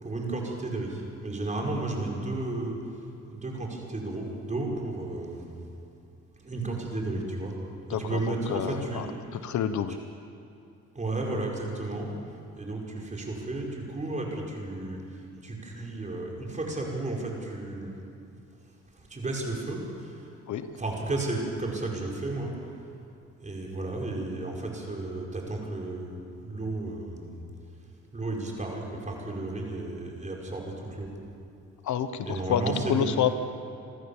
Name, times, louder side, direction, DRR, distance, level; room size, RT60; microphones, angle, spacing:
voice 1, 0.0-2.8 3.3-5.4 6.4-7.5 8.0-9.2 11.0-12.1 12.6-17.9 19.1-20.2 20.6-22.5 23.4-27.4 28.1-31.1 32.3-33.1, right 2 dB, 25° right, -1 dB, 5.1 m, -33 dB
voice 2, 7.9-9.1 9.3-10.0 20.5-20.7 31.8-32.6 32.9-33.3, left 9 dB, 70° left, 10 dB, 1.1 m, -28 dB
27.0 x 14.0 x 7.3 m, 2.7 s
cardioid pair, 90°, 30 cm